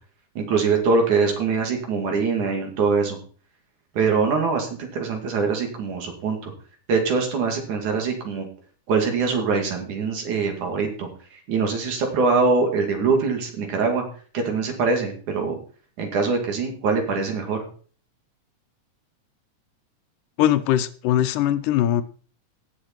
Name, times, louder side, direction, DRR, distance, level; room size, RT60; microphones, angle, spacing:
voice 1, 0.4-3.2 3.9-6.5 6.9-8.5 8.9-14.0 14.3-15.6 16.0-17.7, right 4 dB, 70° right, 3 dB, 3.8 m, -23 dB
voice 2, 20.4-22.0, left 12 dB, 85° left, 13 dB, 2.3 m, -21 dB
17.5 x 6.8 x 4.5 m, 0.42 s
omnidirectional pair, 3.6 m